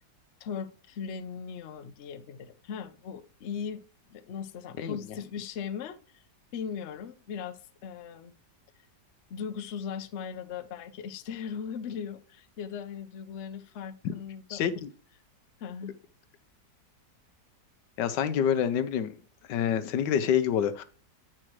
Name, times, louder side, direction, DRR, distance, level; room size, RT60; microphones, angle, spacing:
voice 1, 0.4-3.8 4.1-6.2 6.5-8.3 9.3-14.7 15.6-16.0, left 7 dB, 55° left, 0.8 m, -38 dB
voice 2, 14.5-14.9 18.0-19.2 19.5-20.8, left 8 dB, 85° left, 1.4 m, -27 dB
8.8 x 5.9 x 3.1 m
omnidirectional pair, 1.9 m